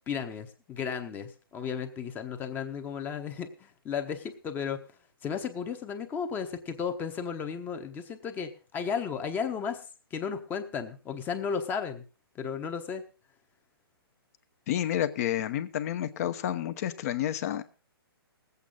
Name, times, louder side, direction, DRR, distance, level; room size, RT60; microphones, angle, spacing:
voice 1, 0.1-4.8 5.2-9.8 10.1-12.0 12.4-13.0, left 6 dB, 15° left, 7 dB, 1.0 m, -34 dB
voice 2, 14.7-17.6, left 11 dB, 40° left, 11 dB, 1.0 m, -30 dB
20.0 x 8.3 x 3.8 m, 0.34 s
hypercardioid pair, 155°, 13 cm